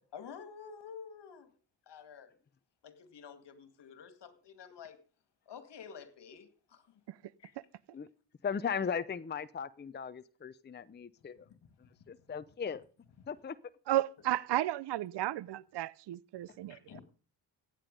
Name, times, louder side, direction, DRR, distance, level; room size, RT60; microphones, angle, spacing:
voice 1, 0.1-1.5 1.9-2.3 2.8-5.0 5.5-6.9 7.4-7.6 11.5-11.7 12.0-12.2 16.3-17.0, left 7 dB, 60° left, 2.2 m, -50 dB
voice 2, 8.4-11.5 11.8-12.8 13.3-13.6, left 6 dB, 25° left, 0.6 m, -37 dB
voice 3, 13.9-16.8, right 14 dB, 60° right, 0.7 m, -33 dB
15.0 x 9.2 x 5.2 m
cardioid pair, 80°, 46 cm